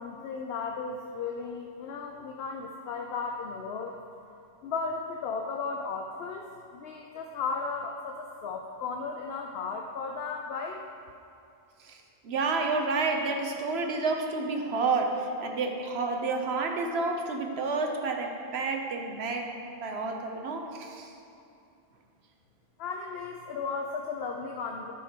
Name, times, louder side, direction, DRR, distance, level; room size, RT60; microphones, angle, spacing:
voice 1, 0.0-4.0 4.6-10.8 22.8-24.9, left 4 dB, 75° left, 2 dB, 0.8 m, -35 dB
voice 2, 11.8-21.1, right 3 dB, 80° right, 3 dB, 1.0 m, -30 dB
11.5 x 4.3 x 5.1 m, 2.7 s
omnidirectional pair, 1.1 m